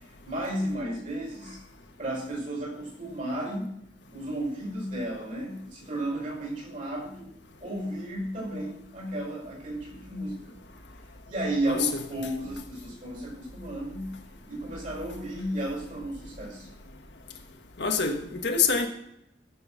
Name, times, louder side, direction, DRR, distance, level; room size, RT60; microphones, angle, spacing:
voice 1, 0.2-1.6 2.0-3.7 4.1-7.3 7.6-10.5 11.3-14.1 14.5-16.7, right 1 dB, 45° right, 5.4 m, -33 dB
voice 2, 17.8-18.9, left 5 dB, 65° left, 1.4 m, -25 dB
14.0 x 6.4 x 6.1 m
head